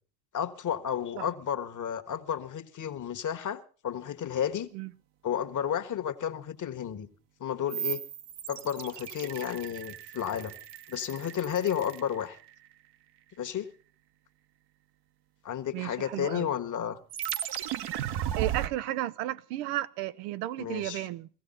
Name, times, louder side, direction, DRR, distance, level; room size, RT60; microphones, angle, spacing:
voice 1, 0.3-4.7 5.2-7.1 7.4-8.0 8.5-10.5 10.9-12.4 13.4-13.7 15.4-17.0 20.6-21.1, left 9 dB, 40° left, 1.4 m, -32 dB
sound 1, 7.7-12.7 17.1-18.7, right 11 dB, 55° right, 1.1 m, -36 dB
voice 2, 15.7-16.5 18.4-21.3, right 14 dB, 75° right, 0.8 m, -33 dB
16.0 x 16.0 x 4.0 m
hypercardioid pair, 65°, 48 cm